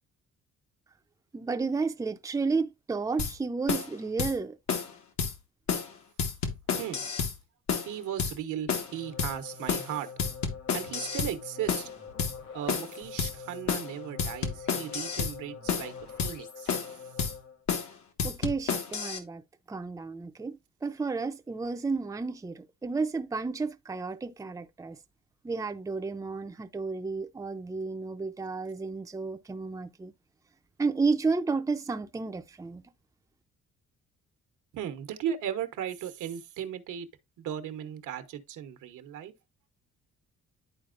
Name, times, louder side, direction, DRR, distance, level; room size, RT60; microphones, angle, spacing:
voice 1, 1.3-4.6 18.2-19.4 19.7-25.0 25.4-30.1 30.8-32.8, right 4 dB, 10° right, 0.5 m, -32 dB
sound 1, 3.2-3.4 3.7-3.9 4.2-4.4 4.7-4.9 5.2-5.3 5.7-5.9 6.2-7.4 7.7-7.9 8.2-8.4 8.7-8.9 9.2-9.4 9.7-9.9 10.2-11.4 11.7-11.9 12.2-12.4 12.7-12.9 13.2-13.4 13.7-13.9 14.2-15.4 15.7-15.9 16.2-16.4 16.7-16.9 17.2-17.4 17.7-17.9 18.2-19.2, left 6 dB, 70° left, 1.4 m, -30 dB
voice 2, 6.7-7.2 7.9-10.1 10.7-11.9 12.5-15.9 16.2-16.8 34.7-37.1 37.4-39.3, right 10 dB, 80° right, 1.1 m, -36 dB
sound 2, 8.8-17.6, left 6 dB, 90° left, 1.5 m, -45 dB
11.0 x 4.2 x 2.5 m
cardioid pair, 90°, 30 cm